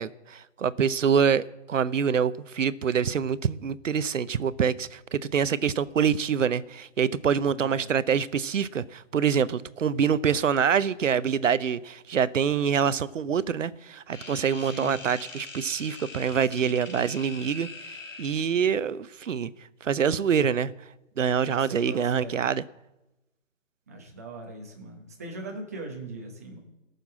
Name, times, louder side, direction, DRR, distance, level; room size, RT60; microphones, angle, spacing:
voice 1, 0.0-19.5 19.8-20.7 21.2-22.6, right 7 dB, 75° right, 17 dB, 0.7 m, -25 dB
voice 2, 7.5-7.9 14.6-15.0 16.6-17.1 21.4-22.4 23.9-26.6, right 2 dB, 10° right, 1 dB, 1.0 m, -40 dB
sound 1, 14.1-18.5, left 3 dB, 75° left, 3.0 m, -43 dB
17.5 x 6.8 x 7.5 m, 0.99 s
hypercardioid pair, 175°, 39 cm